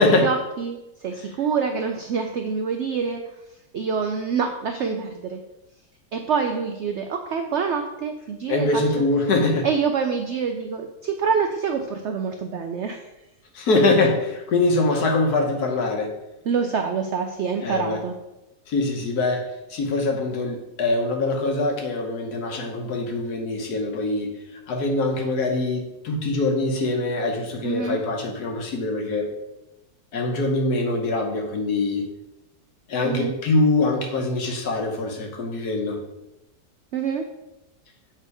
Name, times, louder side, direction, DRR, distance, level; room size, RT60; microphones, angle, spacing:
voice 1, 0.0-3.2 3.5-5.4 6.1-9.0 9.6-13.1 16.4-18.1 27.6-28.0 33.0-33.3 36.9-37.3, right 6 dB, 75° right, 5 dB, 0.6 m, -26 dB
voice 2, 8.5-9.7 13.5-16.1 17.6-18.0 18.7-24.3 24.7-29.3 30.1-32.0 32.9-36.0, left 2 dB, 70° left, 2 dB, 1.5 m, -23 dB
7.6 x 3.3 x 4.7 m, 0.94 s
omnidirectional pair, 1.7 m